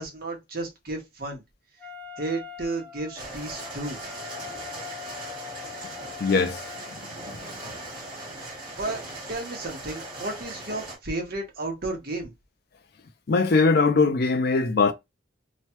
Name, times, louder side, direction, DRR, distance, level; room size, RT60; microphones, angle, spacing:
voice 1, 0.0-1.4 2.2-4.0 8.7-9.0 9.3-12.3, right 2 dB, 50° right, 0.9 m, -33 dB
Wind instrument woodwind instrument, 1.8-7.0, left 8 dB, 10° left, 1.1 m, -43 dB
sound 1, 3.1-11.0, right 2 dB, 25° right, 1.3 m, -39 dB
voice 2, 6.2-6.6 7.3-7.4 7.7-7.8 13.3-14.9, left 4 dB, 50° left, 0.4 m, -21 dB
3.0 x 2.2 x 2.9 m
head